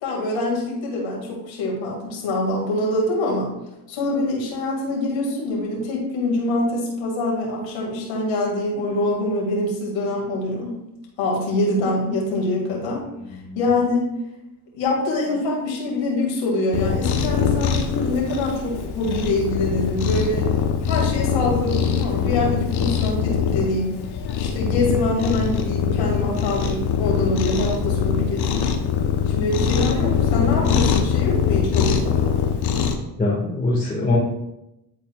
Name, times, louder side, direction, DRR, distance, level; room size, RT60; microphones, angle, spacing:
voice 1, 0.0-3.6 3.9-10.8 11.2-13.0 13.5-14.1 14.7-20.5 20.8-24.0 24.4-28.7 29.3-32.4, left 2 dB, 70° left, -2 dB, 2.3 m, -24 dB
voice 2, 13.3-13.6 33.2-34.2, left 2 dB, 15° left, -6 dB, 1.9 m, -23 dB
Cat, 16.7-32.9, left 7 dB, 55° left, 1.0 m, -22 dB
10.5 x 4.1 x 2.4 m, 0.90 s
hypercardioid pair, 60°, 48 cm